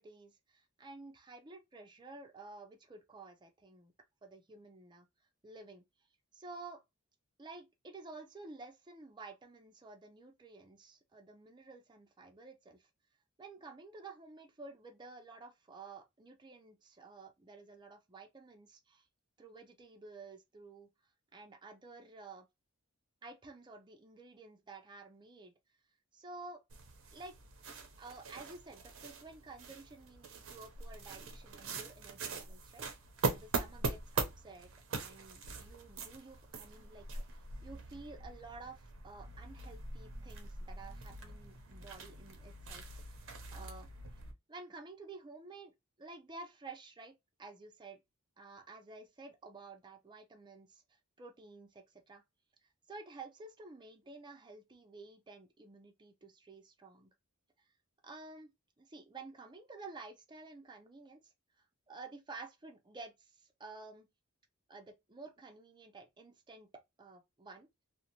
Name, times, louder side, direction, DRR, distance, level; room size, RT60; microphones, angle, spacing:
voice 1, 0.0-3.9 4.2-5.1 5.4-5.9 6.3-6.8 7.4-12.9 13.4-19.1 19.4-20.9 21.3-22.5 23.2-25.5 26.1-26.6 27.1-27.3 28.0-32.9 33.2-34.7 35.0-37.1 37.6-43.2 43.5-43.9 44.5-48.0 48.4-52.2 52.9-57.1 57.6-57.7 58.0-61.3 61.9-64.1 64.7-66.7 67.0-67.7, right 3 dB, 20° right, 0.5 m, -52 dB
sound 1, 26.7-44.3, right 3 dB, 65° right, 0.6 m, -42 dB
2.6 x 2.1 x 2.8 m
head